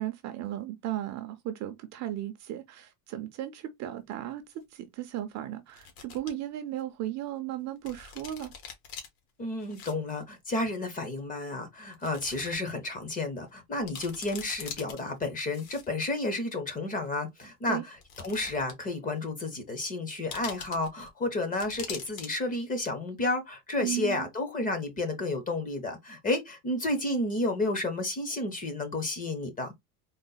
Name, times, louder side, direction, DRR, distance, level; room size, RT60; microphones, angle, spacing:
voice 1, 0.0-4.4 4.7-8.5 17.7-17.8 23.8-24.3, right 13 dB, 40° right, 0.4 m, -35 dB
sound 1, 4.1-4.2 5.7-6.3 6.8-6.9 7.9-9.1 9.6-9.9 10.2-10.3 11.2-11.3 11.9-12.6 12.9-13.0 13.5-13.6 13.8-15.0 15.5-16.1 17.1-17.2 18.0-18.9 19.2-19.3 20.3-21.1 21.6-22.3 22.5-22.7, left 6 dB, 75° left, 1.6 m, -43 dB
voice 2, 9.4-29.7, left 2 dB, 20° left, 0.6 m, -31 dB
3.9 x 2.0 x 3.9 m
cardioid pair, 160°, 46 cm